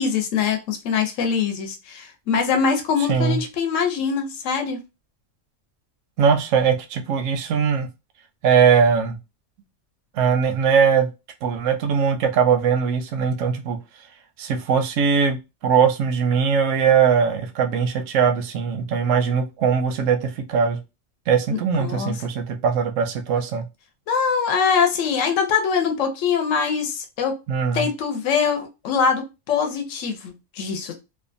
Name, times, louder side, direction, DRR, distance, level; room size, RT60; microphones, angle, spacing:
voice 1, 0.0-4.8 21.8-22.1 24.1-27.3 27.7-30.9, left 6 dB, 85° left, 4 dB, 1.0 m, -23 dB
voice 2, 3.1-3.4 6.2-7.9 8.4-9.2 10.1-11.1 11.4-13.8 14.4-20.8 21.3-23.6 27.5-27.9, right 6 dB, 85° right, 6 dB, 0.9 m, -20 dB
2.7 x 2.2 x 2.5 m, 0.26 s
omnidirectional pair, 1.3 m